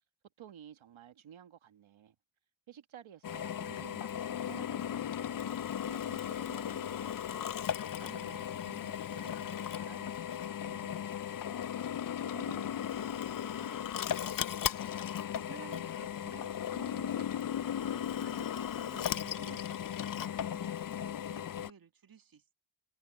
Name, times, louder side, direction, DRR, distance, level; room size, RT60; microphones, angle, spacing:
voice 1, 0.4-2.2 2.7-11.7 12.2-14.5, right 10 dB, 85° right, 1.7 m, -55 dB
Drill, 3.2-21.7, left 9 dB, 45° left, 0.6 m, -36 dB
voice 2, 14.9-22.5, right 7 dB, 45° right, 1.6 m, -54 dB
cardioid pair, 70°, 47 cm